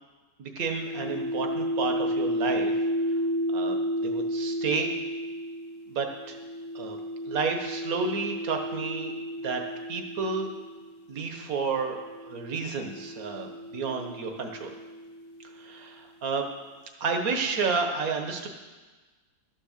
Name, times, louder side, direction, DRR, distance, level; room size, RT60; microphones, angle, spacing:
voice 1, 0.4-2.7 3.1-3.2 3.5-4.9 5.9-6.4 6.7-7.0 7.3-9.1 9.4-9.6 9.9-10.5 11.1-14.7 15.6-16.5 17.0-18.5, right 4 dB, 65° right, 4 dB, 1.6 m, -31 dB
sound 1, 0.6-11.0 11.9-15.6, equal, 60° left, 1.0 m, -32 dB
12.5 x 6.4 x 6.5 m, 1.3 s
omnidirectional pair, 1.6 m